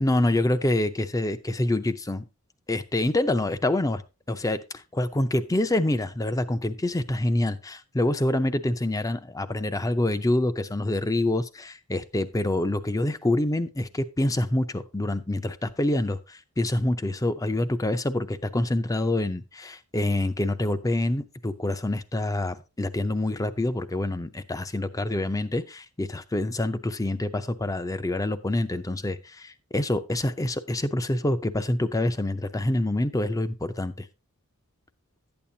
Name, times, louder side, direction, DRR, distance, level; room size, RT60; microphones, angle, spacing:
voice 1, 0.0-2.2 2.7-4.0 4.3-34.1, left 1 dB, 15° left, 0.5 m, -26 dB
12.0 x 8.7 x 2.7 m
head